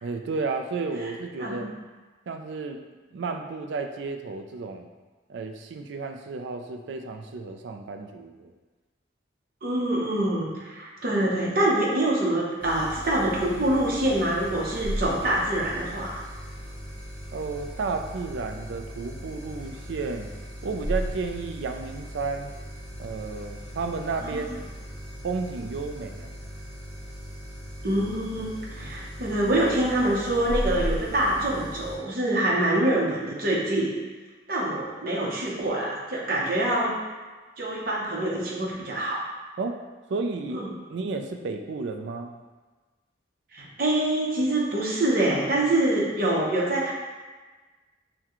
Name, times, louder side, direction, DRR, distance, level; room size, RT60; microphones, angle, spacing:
voice 1, 0.0-1.7 2.3-2.9 3.1-4.9 5.3-8.5 17.3-20.3 20.6-22.5 23.0-24.6 25.2-26.3 39.6-39.8 40.1-40.6 40.9-42.3, right 4 dB, 70° right, 5 dB, 0.4 m, -32 dB
voice 2, 1.4-1.7 9.6-16.2 24.2-24.4 27.8-33.9 34.5-37.0 37.6-39.2 40.5-40.7 43.5-46.9, right 1 dB, 50° right, -4 dB, 0.8 m, -25 dB
sound 1, 12.6-32.0, equal, 5° left, 0.6 m, -37 dB
5.8 x 2.2 x 3.0 m, 1.3 s
head